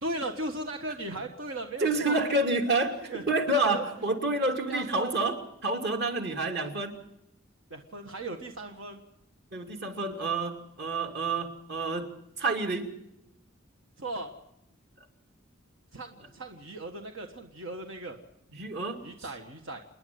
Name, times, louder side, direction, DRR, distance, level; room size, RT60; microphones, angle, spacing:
voice 1, 0.0-2.2 3.1-3.2 3.6-3.8 4.7-5.1 7.7-9.0 14.0-14.3 15.9-18.2 19.0-19.8, right 2 dB, 80° right, 4 dB, 1.6 m, -37 dB
voice 2, 1.8-7.0 9.5-13.0 18.5-19.0, right 2 dB, 55° right, 4 dB, 2.7 m, -29 dB
28.5 x 10.5 x 9.4 m, 0.82 s
head